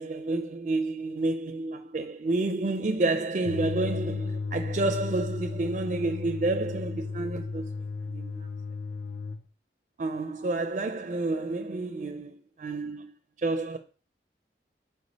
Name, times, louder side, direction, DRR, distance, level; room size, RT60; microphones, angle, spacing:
voice 1, 0.0-8.5 10.0-13.1 13.4-13.8, right 2 dB, 40° right, 0.4 m, -30 dB
sound 1, 3.4-9.4, left 4 dB, 85° left, 0.5 m, -34 dB
4.9 x 4.7 x 4.0 m
head